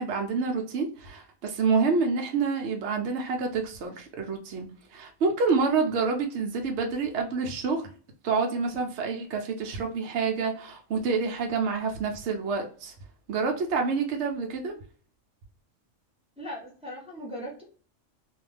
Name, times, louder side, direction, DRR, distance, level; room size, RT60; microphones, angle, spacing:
voice 1, 0.0-7.9 8.2-12.9 13.3-14.8, right 4 dB, 70° right, 3 dB, 0.8 m, -28 dB
voice 2, 16.4-17.6, equal, 5° right, -5 dB, 0.7 m, -38 dB
2.4 x 2.2 x 3.2 m, 0.42 s
omnidirectional pair, 1.3 m